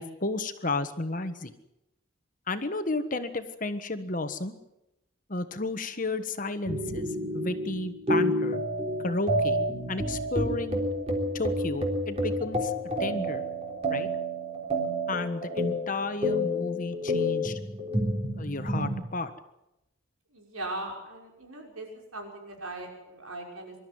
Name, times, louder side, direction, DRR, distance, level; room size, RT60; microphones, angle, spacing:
voice 1, 0.0-1.5 2.5-4.6 5.3-7.1 7.3-8.6 9.0-10.8 11.3-12.7 13.0-13.4 13.9-14.1 15.1-17.6 18.4-19.3, left 2 dB, 40° left, 9 dB, 1.4 m, -32 dB
sound 1, 6.6-19.0, equal, 30° right, 3.6 m, -29 dB
voice 2, 20.3-21.9 22.1-23.8, right 2 dB, 85° right, 1 dB, 5.9 m, -39 dB
24.5 x 13.0 x 9.5 m, 0.90 s
head